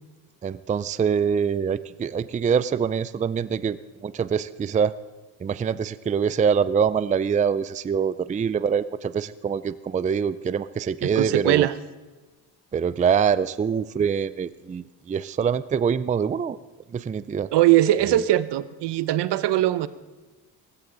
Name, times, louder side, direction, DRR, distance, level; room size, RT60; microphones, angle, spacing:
voice 1, 0.4-4.9 5.4-11.7 12.7-16.6 16.9-17.5, right 7 dB, 20° right, 16 dB, 0.4 m, -24 dB
voice 2, 11.0-11.7 17.5-19.9, right 14 dB, 70° right, 15 dB, 0.9 m, -21 dB
18.5 x 15.5 x 3.9 m, 1.2 s
cardioid pair, 95°, 42 cm